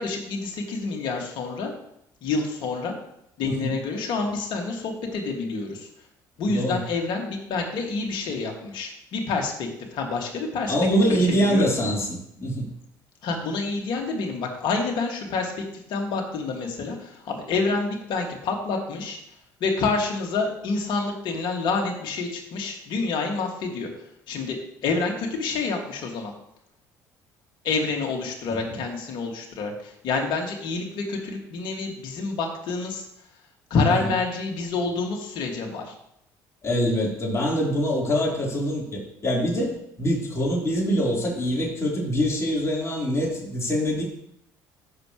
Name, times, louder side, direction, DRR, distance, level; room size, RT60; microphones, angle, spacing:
voice 1, 0.0-1.7 2.2-3.0 3.4-5.9 6.4-10.7 11.3-11.6 13.2-15.6 15.9-19.2 19.6-23.9 24.3-26.3 27.6-33.1 33.7-36.0, left 4 dB, 60° left, 1 dB, 2.2 m, -28 dB
voice 2, 6.5-6.8 10.7-12.7 28.5-28.7 33.9-34.1 36.6-44.0, equal, 30° left, -3 dB, 4.0 m, -24 dB
15.0 x 6.2 x 3.2 m, 0.75 s
hypercardioid pair, 65°, 9 cm